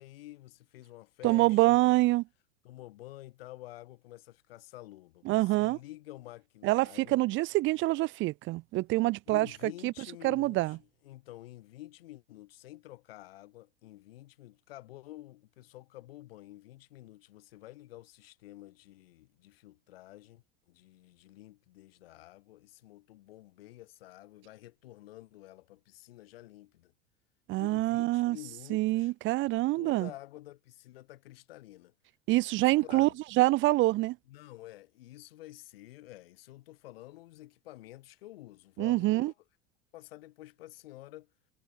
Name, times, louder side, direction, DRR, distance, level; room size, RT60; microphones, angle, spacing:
voice 1, 0.0-1.8 2.6-7.2 9.3-26.9 27.6-29.1 29.7-31.9 32.3-32.4 32.8-33.2 34.3-39.3 39.9-41.3, left 16 dB, 60° left, 6.5 m, -50 dB
voice 2, 1.2-2.2 5.3-5.8 6.6-9.5 9.8-9.9 10.2-10.8 27.5-28.4 28.7-30.1 32.3-33.1 33.4-34.2 38.8-39.3, right 19 dB, 35° right, 1.0 m, -26 dB
figure-of-eight pair, 80°, 33 cm